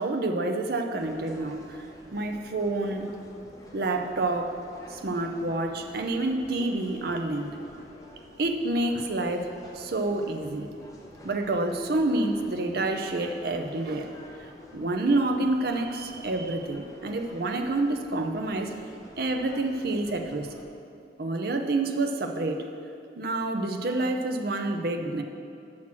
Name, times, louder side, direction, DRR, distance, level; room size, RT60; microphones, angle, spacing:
voice 1, 0.0-1.9 2.1-3.1 3.7-4.5 4.9-7.6 8.4-9.5 9.7-10.7 11.2-14.1 14.7-18.7 19.2-20.5 21.2-22.6 23.2-25.2, right 2 dB, 55° right, 5 dB, 0.6 m, -28 dB
sound 1, 1.0-20.6, equal, 20° left, 0.8 m, -50 dB
7.5 x 5.9 x 6.0 m, 2.5 s
head